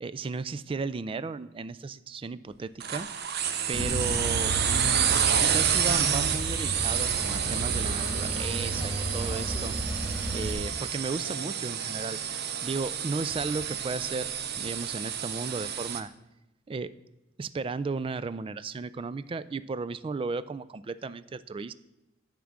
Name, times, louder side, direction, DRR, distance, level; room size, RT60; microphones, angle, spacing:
voice 1, 0.0-3.1 3.7-5.1 5.4-12.2 12.6-16.1 16.7-16.9 17.4-21.7, right 4 dB, 25° right, 15 dB, 0.3 m, -35 dB
sound 1, 2.8-16.0, right 8 dB, 55° right, 0.7 m, -29 dB
Male speech man speaking / Car / Idling, 3.7-10.5, right 1 dB, 10° right, 1.2 m, -33 dB
10.5 x 3.8 x 7.3 m, 0.96 s
head